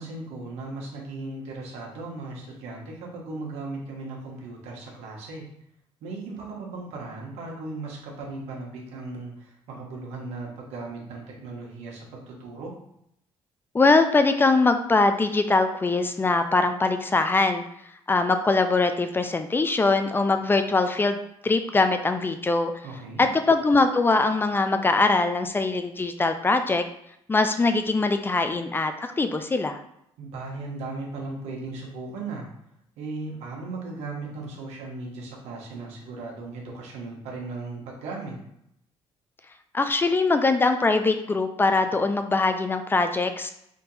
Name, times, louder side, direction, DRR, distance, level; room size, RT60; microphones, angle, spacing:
voice 1, 0.0-5.4 6.0-12.7 22.8-23.3 30.2-32.4 33.0-38.4, right 3 dB, 85° right, -1 dB, 1.2 m, -37 dB
voice 2, 13.7-17.6 18.1-21.2 21.4-22.7 23.2-26.8 27.3-29.8 39.7-43.5, left 3 dB, 20° left, 8 dB, 0.4 m, -22 dB
3.6 x 2.7 x 4.0 m, 0.75 s
cardioid pair, 100°, 11 cm